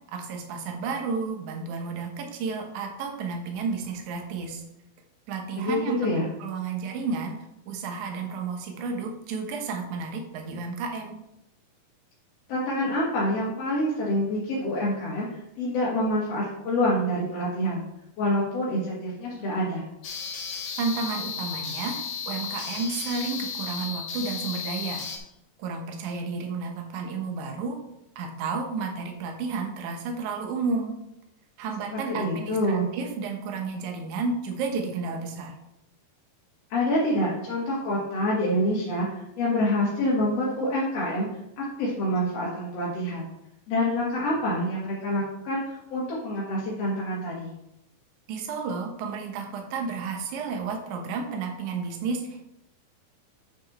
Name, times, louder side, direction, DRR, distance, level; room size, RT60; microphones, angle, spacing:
voice 1, 0.1-4.6 5.3-7.4 7.7-11.2 20.8-22.0 22.3-25.1 25.6-27.8 28.2-31.0 31.6-35.6 48.3-52.4, right 4 dB, 65° right, 3 dB, 2.3 m, -32 dB
voice 2, 5.5-6.3 12.5-15.3 15.6-17.8 18.2-19.9 31.9-32.9 36.7-41.3 41.6-43.3 43.7-47.5, left 1 dB, 50° left, -6 dB, 2.3 m, -26 dB
sound 1, 20.0-25.2, left 6 dB, 70° left, 3.1 m, -34 dB
8.2 x 6.6 x 4.2 m, 0.83 s
omnidirectional pair, 4.3 m